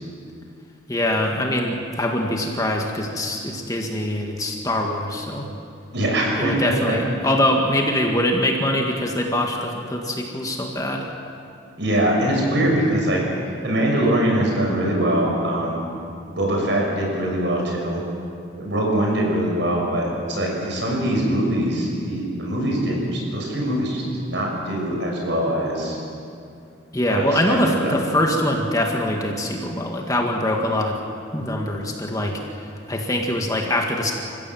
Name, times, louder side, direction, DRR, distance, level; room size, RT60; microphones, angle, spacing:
voice 1, 0.9-5.5 6.4-11.1 26.9-31.0 31.3-32.4 32.9-34.1, left 1 dB, 15° left, 1 dB, 1.8 m, -23 dB
voice 2, 5.9-7.0 11.8-13.2 13.6-15.8 16.3-18.0 18.6-26.0 27.1-27.6 27.8-28.0, right 1 dB, 65° right, -2 dB, 6.7 m, -22 dB
28.5 x 15.5 x 7.7 m, 2.4 s
head